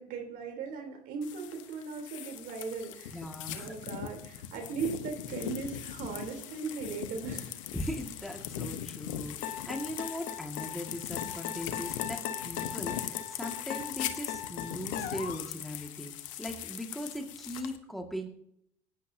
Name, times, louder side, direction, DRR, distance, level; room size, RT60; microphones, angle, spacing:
voice 1, 0.0-7.6, right 5 dB, 65° right, 3 dB, 3.6 m, -38 dB
sound 1, 1.2-17.8, left 11 dB, 85° left, 1.0 m, -40 dB
voice 2, 3.1-3.8 7.7-18.3, left 1 dB, ahead, 2 dB, 2.0 m, -39 dB
sound 2, 9.4-15.5, left 9 dB, 65° left, 1.8 m, -38 dB
19.0 x 10.5 x 2.8 m, 0.73 s
hypercardioid pair, 80°, 16 cm